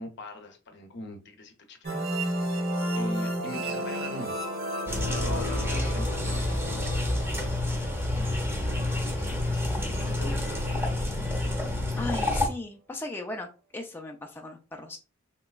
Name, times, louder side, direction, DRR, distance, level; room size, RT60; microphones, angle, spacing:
voice 1, 0.0-2.6 2.9-4.4 5.1-6.9 7.4-7.5 8.2-9.7 10.1-10.8, left 1 dB, 60° left, 0.6 m, -42 dB
sound 1, 1.8-9.3, right 1 dB, 50° right, 1.0 m, -33 dB
sound 2, 4.9-12.5, left 1 dB, 10° right, 0.7 m, -28 dB
voice 2, 12.0-13.5 13.7-15.0, left 2 dB, 10° left, 0.3 m, -37 dB
3.4 x 2.9 x 2.3 m
head